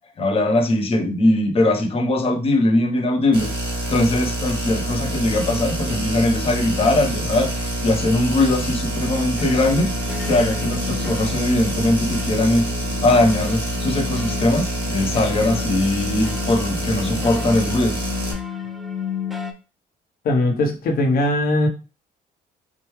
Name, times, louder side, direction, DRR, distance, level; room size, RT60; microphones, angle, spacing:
voice 1, 0.2-3.5 3.9-9.9 10.2-12.7 13.0-18.0, left 1 dB, 35° left, 4 dB, 0.9 m, -20 dB
sound 1, 3.3-18.3, right 1 dB, 30° right, 1.4 m, -27 dB
sound 2, 5.2-19.5, left 7 dB, ahead, 0.5 m, -34 dB
voice 2, 20.2-21.7, left 1 dB, 60° left, 4 dB, 1.0 m, -19 dB
4.6 x 2.2 x 3.1 m, 0.33 s
cardioid pair, 110°, 17 cm